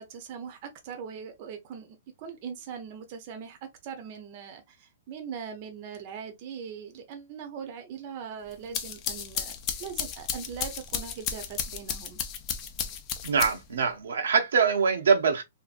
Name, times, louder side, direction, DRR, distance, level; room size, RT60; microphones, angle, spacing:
voice 1, 0.0-9.5 9.8-12.2, right 7 dB, 40° right, 0.7 m, -41 dB
sound 1, 8.5-13.8, left 8 dB, 30° left, 0.5 m, -34 dB
voice 2, 13.2-15.4, right 5 dB, 85° right, 0.7 m, -23 dB
2.7 x 2.6 x 2.5 m
hypercardioid pair, 155°, 0 cm